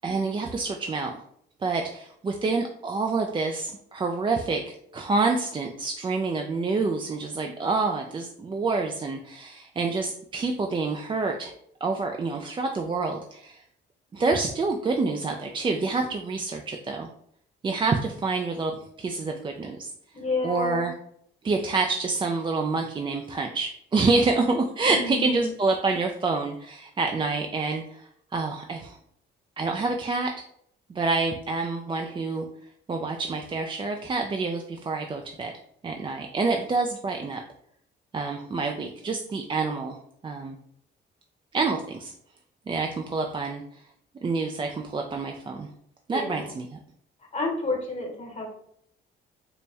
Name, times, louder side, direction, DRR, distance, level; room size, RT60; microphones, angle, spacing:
voice 1, 0.0-1.2 1.6-11.5 11.8-13.6 14.1-17.1 17.6-19.9 20.4-20.9 21.4-29.0 29.6-30.3 30.9-32.5 32.9-35.5 35.8-37.4 38.1-40.0 40.2-40.6 41.5-42.1 42.7-43.6 44.2-45.7 46.1-46.8, right 3 dB, 25° right, 3 dB, 0.4 m, -27 dB
voice 2, 20.1-20.9 24.9-25.5 46.1-46.5 47.3-48.5, left 3 dB, 35° left, 1 dB, 1.0 m, -30 dB
4.3 x 2.1 x 3.3 m, 0.68 s
cardioid pair, 90°, 20 cm